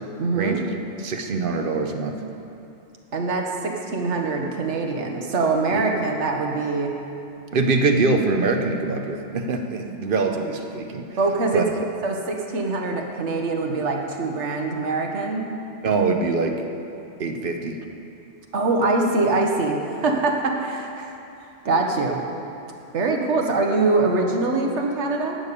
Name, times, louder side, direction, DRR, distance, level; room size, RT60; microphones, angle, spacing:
voice 1, 0.2-0.6 3.1-7.0 11.2-11.7 12.0-15.5 18.5-21.1 21.6-22.2 22.9-25.4, right 3 dB, 80° right, 1 dB, 1.4 m, -23 dB
voice 2, 1.0-2.2 5.7-5.8 7.5-11.0 11.5-11.6 15.8-16.6 17.2-17.8, right 3 dB, 55° right, 5 dB, 0.9 m, -23 dB
11.5 x 5.3 x 8.2 m, 2.7 s
omnidirectional pair, 1.2 m